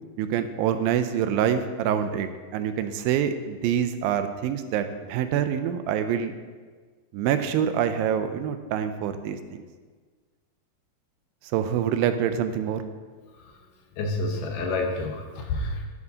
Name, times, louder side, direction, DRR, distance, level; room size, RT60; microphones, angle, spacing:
voice 1, 0.2-6.4 7.1-9.6 11.5-12.8, right 9 dB, 85° right, 9 dB, 2.4 m, -26 dB
voice 2, 14.0-15.9, left 2 dB, 75° left, 2 dB, 2.4 m, -28 dB
11.0 x 9.4 x 2.8 m, 1.5 s
omnidirectional pair, 4.1 m